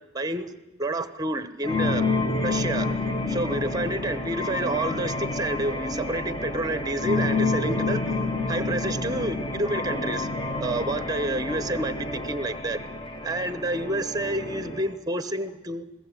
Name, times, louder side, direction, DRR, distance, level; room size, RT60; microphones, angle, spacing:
voice 1, 0.1-0.5 0.8-2.1 2.4-2.9 3.3-8.2 8.5-10.3 10.6-12.8 13.2-15.8, right 2 dB, 15° right, 12 dB, 1.0 m, -29 dB
sound 1, 1.6-14.9, left 3 dB, 20° left, 1.4 m, -29 dB
21.5 x 16.0 x 8.2 m, 1.0 s
head